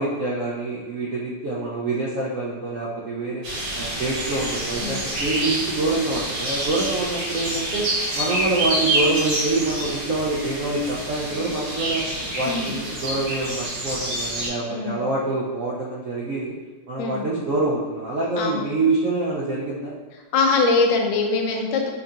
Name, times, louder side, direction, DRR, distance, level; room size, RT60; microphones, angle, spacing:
voice 1, 0.0-3.5 3.7-7.9 8.1-12.0 12.3-16.6 16.9-19.9, right 2 dB, 75° right, -5 dB, 0.7 m, -26 dB
sound 1, 3.4-14.5, right 1 dB, 45° right, 1.1 m, -27 dB
voice 2, 14.7-15.0 17.0-17.2 18.4-18.7 20.3-21.9, left 3 dB, 85° left, 1 dB, 1.4 m, -22 dB
5.4 x 2.7 x 2.4 m, 1.3 s
omnidirectional pair, 2.0 m